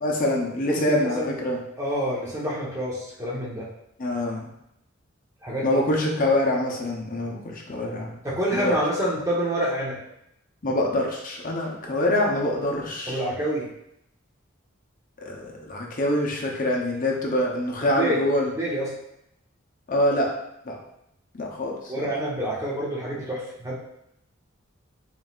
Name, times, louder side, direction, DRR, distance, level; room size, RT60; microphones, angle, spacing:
voice 1, 0.0-1.6 4.0-4.5 5.6-8.1 8.5-8.8 10.6-13.2 15.2-18.5 19.9-20.3 20.6-20.8 21.3-22.1, left 1 dB, 40° left, 0 dB, 0.7 m, -25 dB
voice 2, 0.7-1.3 1.8-3.7 5.4-5.7 8.2-10.0 13.1-13.7 18.0-18.2 18.6-18.9 21.9-23.7, equal, 15° right, -5 dB, 1.0 m, -27 dB
4.0 x 3.9 x 2.4 m, 0.79 s
head